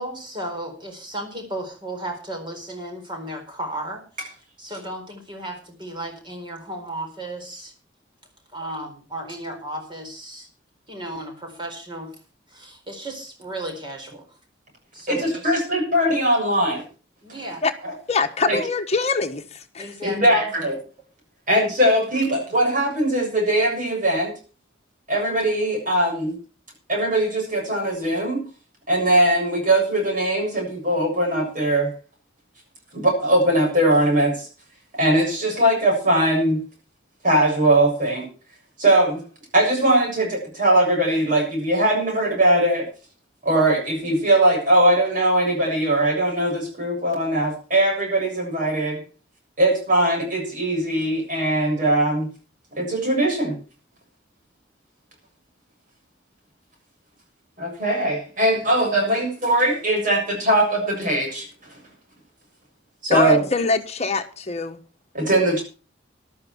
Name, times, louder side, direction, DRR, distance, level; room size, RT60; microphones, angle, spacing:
voice 1, 0.0-4.3 4.6-7.7 8.5-10.5 10.9-12.2 12.5-14.3 14.9-15.6 17.2-17.6 19.8-20.4, right 1 dB, 25° right, 4.3 m, -34 dB
voice 2, 15.1-16.8 17.8-17.9 18.5-18.6 20.0-20.8 21.5-24.3 25.1-26.3 26.9-28.4 28.9-31.9 32.9-34.5 35.0-36.6 37.2-38.3 38.8-39.2 39.5-42.9 43.4-49.0 49.6-52.3 52.8-53.6 57.6-61.5 63.0-63.4 65.1-65.6, right 1 dB, 45° right, 7.0 m, -20 dB
voice 3, 18.1-19.9 63.1-64.8, left 4 dB, 35° left, 1.4 m, -23 dB
14.0 x 12.0 x 4.6 m
head